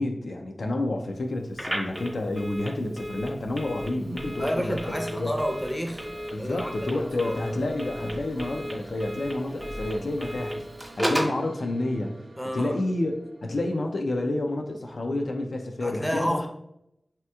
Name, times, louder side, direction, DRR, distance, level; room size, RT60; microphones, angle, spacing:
voice 1, 0.0-5.3 6.3-10.6 11.0-12.1 12.5-13.1 13.4-16.5, left 2 dB, 90° left, 3 dB, 0.3 m, -29 dB
Telephone, 1.5-11.4, equal, 25° right, 0.8 m, -34 dB
sound 1, 3.7-13.9, right 2 dB, 70° right, 0.3 m, -48 dB
voice 2, 4.4-6.0 6.4-7.4 12.4-12.8 15.8-16.5, equal, 5° left, 3 dB, 0.5 m, -30 dB
3.4 x 2.8 x 2.2 m, 0.78 s
wide cardioid pair, 50°, 0 cm